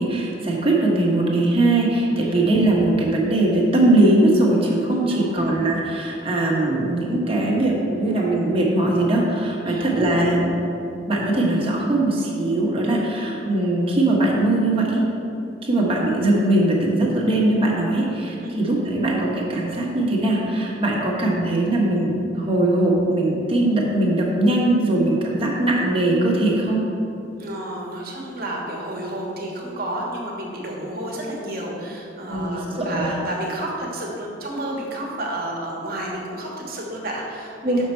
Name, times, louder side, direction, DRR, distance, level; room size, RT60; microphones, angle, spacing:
voice 1, 0.0-10.6 11.1-15.0 15.6-26.8 32.3-33.1 37.6-37.8, right 1 dB, 30° right, -3 dB, 1.1 m, -20 dB
voice 2, 2.2-2.5 5.0-5.4 9.6-9.9 18.4-18.6 27.4-37.8, right 1 dB, 55° right, -2 dB, 1.2 m, -31 dB
6.5 x 5.4 x 4.4 m, 2.7 s
head